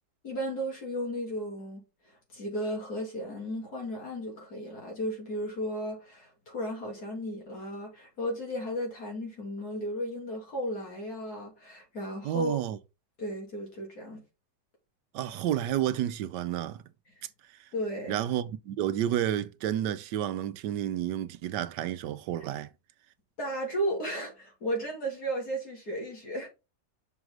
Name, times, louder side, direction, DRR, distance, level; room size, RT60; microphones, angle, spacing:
voice 1, 0.2-12.6 13.2-14.2 17.7-18.2 23.4-26.5, equal, 60° left, 3.3 m, -34 dB
voice 2, 12.2-12.8 15.1-16.8 18.1-22.7, right 11 dB, 80° right, 1.3 m, -30 dB
6.1 x 4.7 x 3.8 m
omnidirectional pair, 1.8 m